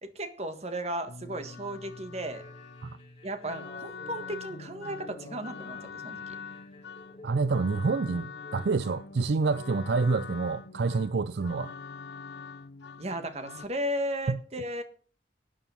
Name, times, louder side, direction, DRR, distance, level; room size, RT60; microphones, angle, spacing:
voice 1, 0.0-2.4 3.2-6.4 13.0-14.8, right 1 dB, 40° right, 1.6 m, -35 dB
sound 1, 1.1-13.7, left 5 dB, 80° left, 0.7 m, -44 dB
sound 2, 2.2-8.9, left 2 dB, 30° left, 6.9 m, -50 dB
voice 2, 7.2-11.7 14.3-14.4, right 4 dB, 70° right, 0.4 m, -27 dB
13.0 x 9.0 x 5.7 m
head